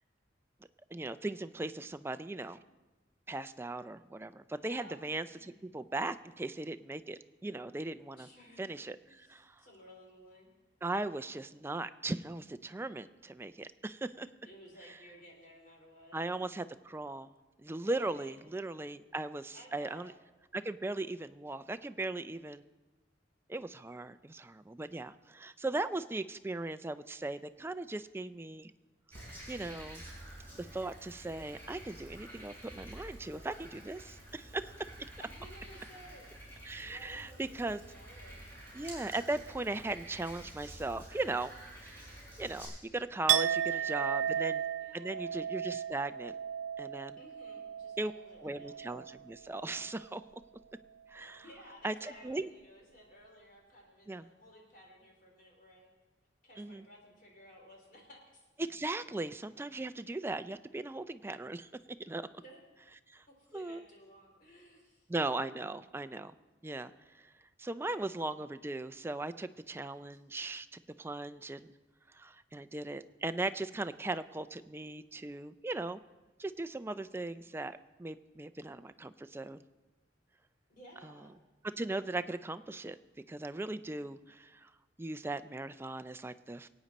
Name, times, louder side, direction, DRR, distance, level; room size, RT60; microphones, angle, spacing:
voice 1, 0.9-2.6 3.3-8.3 8.6-9.6 10.8-14.3 16.1-17.3 17.6-20.1 20.5-22.6 23.5-28.7 29.5-30.0 30.6-34.9 36.7-37.8 38.7-41.5 41.8-42.1 42.4-43.6 43.9-44.6 44.9-46.3 46.8-47.2 48.0-48.1 48.4-50.2 51.1-51.4 51.8-52.5 54.1-54.3 56.6-56.8 58.6-61.7 62.0-62.3 63.1-63.2 63.5-63.8 65.1-66.3 66.6-67.3 67.6-71.7 72.1-76.0 76.4-79.6 81.0-81.1 81.8-83.0 83.3-84.7 85.0-86.7, right 2 dB, 15° right, 11 dB, 0.4 m, -38 dB
voice 2, 4.7-5.0 5.2-5.6 8.1-8.6 9.1-10.5 14.4-16.2 17.8-18.4 19.5-20.1 35.2-36.3 36.7-38.5 43.3-45.3 47.2-48.8 51.4-55.9 56.4-58.5 62.4-62.6 63.4-65.1 80.7-81.3, equal, 50° left, 0 dB, 3.2 m, -56 dB
Frog, 29.1-42.7, right 1 dB, 10° left, 5.4 m, -50 dB
Chink clink, 43.3-49.2 49.5-49.9, right 10 dB, 85° right, 0.3 m, -34 dB
23.0 x 9.0 x 4.1 m, 1.2 s
head